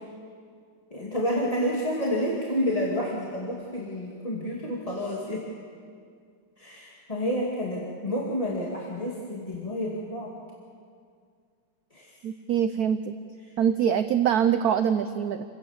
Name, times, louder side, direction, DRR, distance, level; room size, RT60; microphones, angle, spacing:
voice 1, 0.9-5.5 6.6-10.3 11.9-12.2, equal, 15° left, -4 dB, 2.2 m, -29 dB
voice 2, 12.2-13.1 13.6-15.4, right 8 dB, 65° right, 10 dB, 0.9 m, -24 dB
28.0 x 16.5 x 7.3 m, 2.2 s
omnidirectional pair, 2.2 m